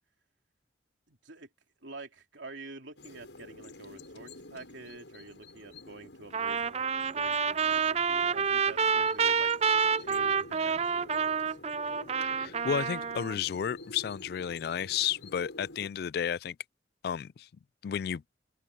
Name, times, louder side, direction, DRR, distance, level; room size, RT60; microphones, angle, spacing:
voice 1, 1.1-1.5 1.8-6.8 7.1-9.5 10.0-11.6, right 2 dB, 90° right, 3.2 m, -48 dB
sound 1, 3.0-15.9, left 2 dB, 80° left, 7.5 m, -49 dB
Trumpet, 6.3-13.4, right 6 dB, 35° right, 0.4 m, -28 dB
voice 2, 12.2-16.6 17.0-17.5 17.8-18.2, left 8 dB, 55° left, 0.3 m, -32 dB
open air
head